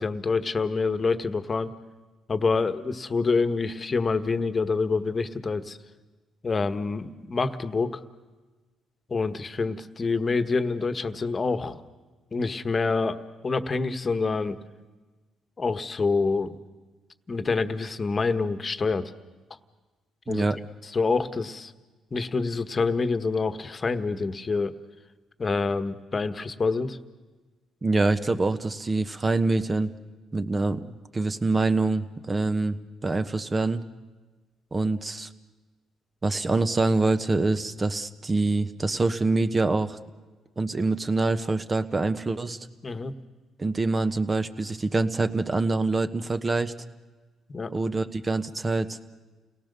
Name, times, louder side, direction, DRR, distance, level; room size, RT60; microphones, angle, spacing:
voice 1, 0.0-1.7 2.3-5.8 6.4-8.0 9.1-11.8 12.3-13.2 13.4-14.6 15.6-16.6 17.3-19.1 20.3-20.5 20.9-21.7 22.1-24.7 25.4-27.0 42.8-43.1 47.5-47.7, left 4 dB, 35° left, 11 dB, 1.3 m, -26 dB
voice 2, 20.3-20.6 27.8-29.9 30.3-33.8 34.7-35.3 36.2-40.0 40.6-42.6 43.6-46.7 47.7-49.0, right 3 dB, 30° right, 10 dB, 1.2 m, -25 dB
29.0 x 18.0 x 6.8 m, 1.3 s
cardioid pair, 75°, 0 cm